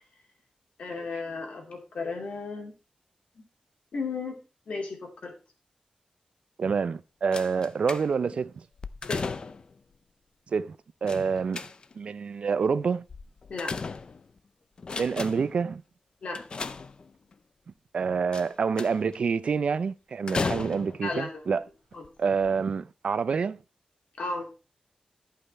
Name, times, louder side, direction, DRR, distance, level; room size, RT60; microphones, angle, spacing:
voice 1, 0.8-2.7 3.4-3.5 3.9-4.4 4.7-5.3 9.1-9.2 13.5-13.8 16.2-16.4 20.4-20.5 21.0-21.4 21.9-22.0 24.2-24.5, left 3 dB, 65° left, 2.4 m, -34 dB
voice 2, 6.6-8.5 10.5-11.7 12.0-13.0 15.0-15.8 17.9-21.6 22.2-23.6, right 5 dB, 55° right, 0.4 m, -27 dB
sound 1, 7.3-8.4 8.8-9.8 11.1-12.1 13.1-14.4 14.8-15.6 16.3-17.3 18.3-19.1 20.3-21.1 21.9-22.1 22.4-22.5, left 4 dB, 40° left, 0.5 m, -35 dB
11.5 x 5.5 x 4.2 m
wide cardioid pair, 175°, 2 cm